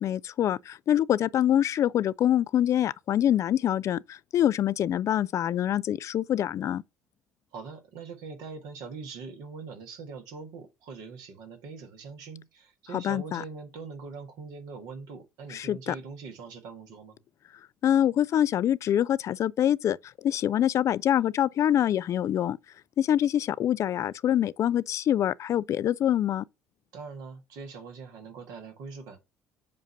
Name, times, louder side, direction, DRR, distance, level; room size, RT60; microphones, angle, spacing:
voice 1, 0.0-6.8 12.9-13.4 15.5-16.0 17.8-22.6 23.0-26.4, left 11 dB, 45° left, 0.3 m, -25 dB
voice 2, 7.5-17.2 26.9-29.2, right 4 dB, 65° right, 1.3 m, -42 dB
7.5 x 2.6 x 5.4 m
hypercardioid pair, 60°, 7 cm